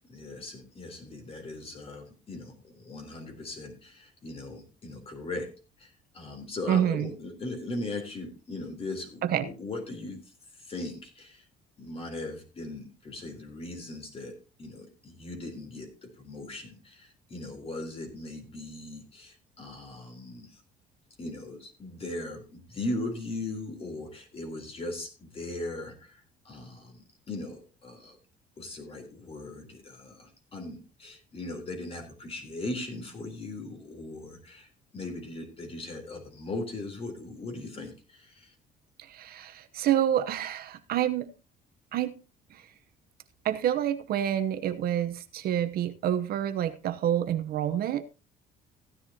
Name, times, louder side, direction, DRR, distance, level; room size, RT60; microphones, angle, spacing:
voice 1, 0.1-5.5 5.8-10.2 10.6-11.4 11.8-20.6 21.2-28.2 28.6-38.5, left 2 dB, 35° left, 3.6 m, -39 dB
voice 2, 6.7-7.1 9.2-9.5 39.0-41.3 41.9-42.2 42.5-42.7 43.4-48.0, right 10 dB, 65° right, 0.9 m, -28 dB
15.0 x 10.5 x 2.9 m
cardioid pair, 110°, 17 cm